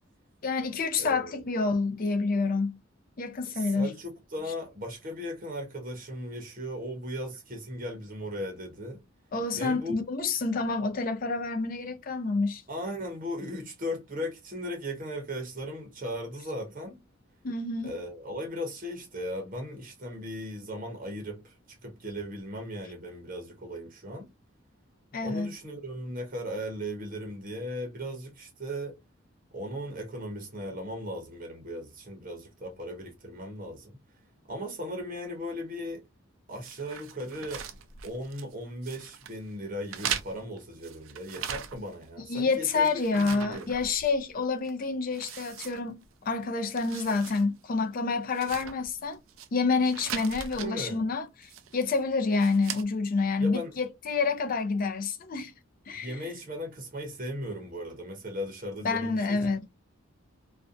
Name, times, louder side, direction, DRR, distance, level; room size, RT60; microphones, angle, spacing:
voice 1, 0.4-2.8 3.2-3.9 9.3-12.6 17.4-18.0 25.1-25.5 42.3-49.2 49.5-51.3 51.7-55.5 55.9-56.2 58.8-59.7, left 4 dB, 45° left, 0.4 m, -28 dB
voice 2, 1.0-1.4 3.5-9.0 9.5-10.0 12.7-17.0 17.8-24.3 25.2-29.0 29.5-34.0 34.5-36.0 36.5-37.7 38.0-43.7 50.6-51.1 53.4-53.7 55.9-59.5, equal, 40° right, 0.7 m, -37 dB
sound 1, 36.6-38.5 38.8-39.4 39.9-42.0 42.4-44.3 44.6-44.7 45.1-46.3 46.6-47.4 47.8-47.9 48.3-49.5 49.8-50.7 51.4-51.9 52.3-52.8, right 9 dB, 75° right, 0.4 m, -39 dB
2.5 x 2.2 x 2.4 m
head